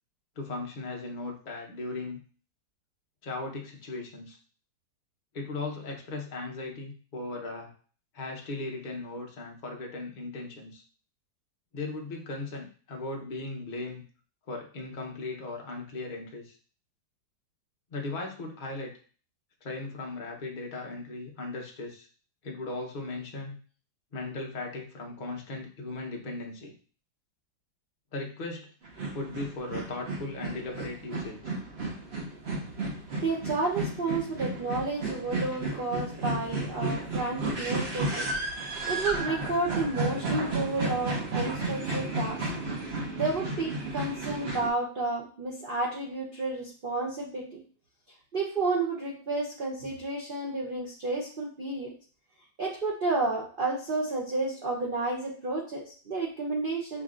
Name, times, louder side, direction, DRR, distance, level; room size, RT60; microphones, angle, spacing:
voice 1, 0.4-2.2 3.2-4.4 5.3-7.7 8.1-10.8 11.7-14.0 14.5-16.5 17.9-18.9 19.6-22.1 22.4-23.6 24.1-26.7 28.1-28.7 29.1-31.5, left 2 dB, 45° left, 0 dB, 0.6 m, -37 dB
sound 1, 28.8-44.7, right 2 dB, 50° right, 0.7 m, -33 dB
voice 2, 33.2-38.3 38.6-42.5 43.1-47.6 48.3-51.9 52.6-57.0, right 3 dB, 80° right, -2 dB, 0.4 m, -31 dB
6.7 x 2.7 x 2.4 m, 0.42 s
omnidirectional pair, 2.1 m